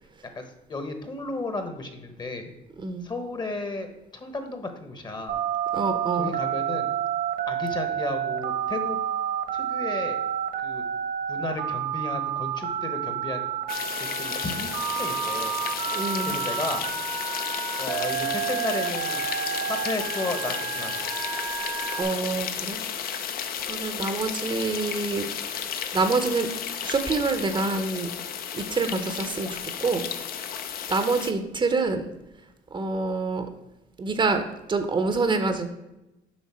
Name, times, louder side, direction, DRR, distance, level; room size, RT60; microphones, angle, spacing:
voice 1, 0.3-2.5 3.0-5.4 6.2-6.9 7.5-9.0 9.5-10.2 10.6-10.8 11.3-13.5 14.0-15.6 16.2-16.8 17.8-19.3 19.7-21.1, left 2 dB, 25° left, 7 dB, 1.0 m, -33 dB
Telephone, 5.3-22.0, right 9 dB, 70° right, 1.3 m, -30 dB
voice 2, 5.7-6.3 15.9-16.4 22.0-22.8 23.1-23.3 23.6-25.7 25.9-26.5 26.8-28.1 28.5-30.0 30.9-32.1 32.7-33.5 34.0-35.7, right 3 dB, 30° right, 7 dB, 0.7 m, -26 dB
sound 1, 13.7-31.3, left 8 dB, 60° left, 0.7 m, -33 dB
7.3 x 5.5 x 4.3 m, 0.94 s
cardioid pair, 110°, 17 cm